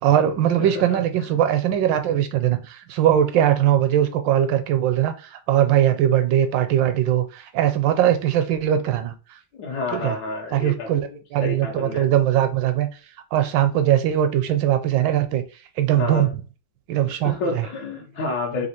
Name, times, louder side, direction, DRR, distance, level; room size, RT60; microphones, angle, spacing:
voice 1, 0.0-9.1 9.9-10.1 10.5-12.9 13.3-15.4 15.8-16.3 16.9-17.7, right 11 dB, 80° right, 1.3 m, -20 dB
voice 2, 0.6-1.3 9.5-12.1 15.9-16.3 17.2-18.7, left 3 dB, 70° left, 1.4 m, -30 dB
3.5 x 2.8 x 4.3 m
omnidirectional pair, 2.0 m